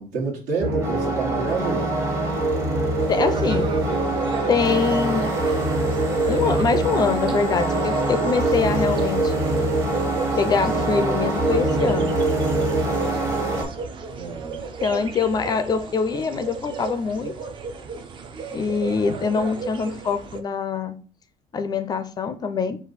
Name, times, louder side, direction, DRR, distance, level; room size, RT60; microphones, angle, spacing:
voice 1, 0.0-1.9 14.1-14.7, right 4 dB, 75° right, -1 dB, 1.6 m, -28 dB
sound 1, 0.6-13.6, right 2 dB, 20° right, 0.9 m, -23 dB
sound 2, 3.0-20.4, right 5 dB, 35° right, 0.5 m, -34 dB
voice 2, 3.1-3.7 4.5-5.3 6.3-9.3 10.4-12.2 14.8-17.3 18.5-21.0 21.5-22.8, left 5 dB, 30° left, 10 dB, 0.4 m, -24 dB
4.2 x 2.4 x 4.0 m, 0.37 s
cardioid pair, 145°, 14 cm